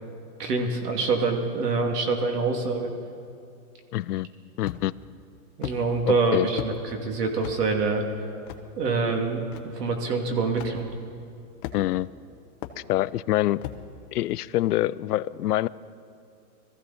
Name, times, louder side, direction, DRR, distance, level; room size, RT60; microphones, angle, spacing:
voice 1, 0.4-2.9 5.6-8.0 8.8-9.4 9.8-10.9, right 4 dB, 80° right, 3 dB, 2.7 m, -25 dB
voice 2, 3.9-4.3 4.6-4.9 6.1-6.5 11.7-12.1 12.9-13.6 14.1-15.7, left 15 dB, 75° left, 19 dB, 0.5 m, -25 dB
sound 1, 4.6-5.0 5.6-5.8 6.6-6.8 7.4-7.6 8.5-8.6 9.5-9.6 10.6-10.7 11.6-12.0 12.6-12.8 13.6-13.8, left 13 dB, 35° left, 0.8 m, -35 dB
22.0 x 14.5 x 4.3 m, 2.5 s
hypercardioid pair, 155°, 47 cm